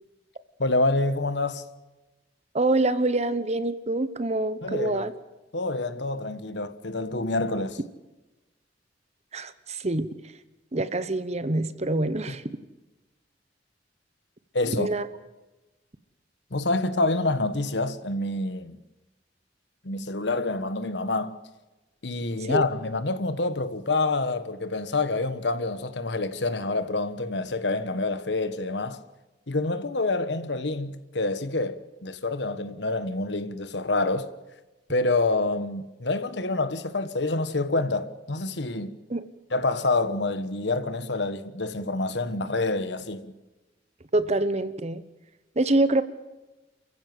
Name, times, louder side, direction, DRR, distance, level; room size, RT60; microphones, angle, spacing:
voice 1, 0.6-1.6 4.6-5.1 5.5-7.8 12.3-12.4 14.5-14.9 16.5-18.8 19.8-21.4 22.0-29.0 29.5-34.3 34.9-39.0 39.5-43.3, left 2 dB, 75° left, 1.3 m, -27 dB
voice 2, 2.5-5.1 9.3-10.1 10.7-12.4 14.7-15.1 22.4-22.6 39.1-39.2 44.1-45.0 45.6-46.0, right 2 dB, 40° right, 1.1 m, -25 dB
29.0 x 15.0 x 7.8 m
head